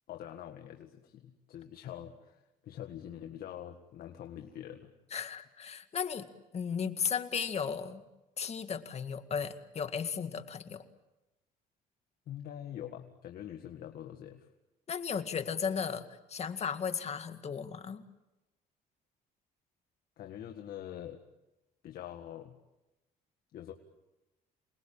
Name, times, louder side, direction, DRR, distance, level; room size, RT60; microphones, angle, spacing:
voice 1, 0.1-4.9 12.3-14.5 20.2-21.2 21.8-22.6 23.5-23.7, left 10 dB, 65° left, 4 dB, 1.8 m, -44 dB
voice 2, 5.1-6.3 6.5-8.0 8.4-10.8 14.9-18.0, left 6 dB, 40° left, 8 dB, 2.0 m, -35 dB
27.5 x 20.5 x 8.8 m, 1.0 s
cardioid pair, 110°, 17 cm